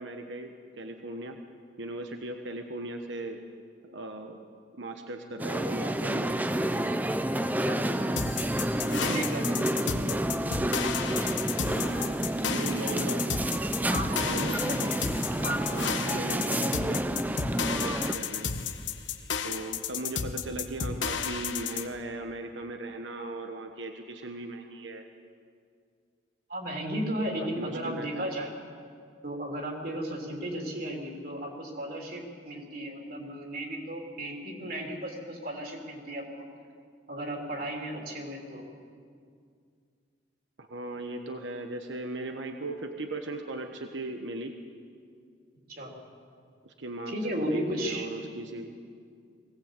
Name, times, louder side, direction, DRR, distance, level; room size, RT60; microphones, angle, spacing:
voice 1, 0.0-1.4 1.8-3.4 3.8-4.5 4.8-6.4 9.9-10.4 11.6-12.2 12.4-13.2 14.2-14.6 15.7-17.2 17.8-18.5 19.4-25.1 27.2-28.3 40.6-44.5 46.6-48.7, right 2 dB, 75° right, 5 dB, 1.3 m, -38 dB
sound 1, 5.4-18.1, right 1 dB, 10° right, 0.6 m, -29 dB
sound 2, 8.2-21.9, left 6 dB, 80° left, 1.2 m, -33 dB
voice 2, 8.9-9.9 13.9-14.8 15.4-15.8 26.5-28.5 29.2-36.5 37.1-38.6 45.7-45.9 47.1-48.1, right 1 dB, 50° right, 1 dB, 3.6 m, -35 dB
21.5 x 18.0 x 8.3 m, 2.2 s
head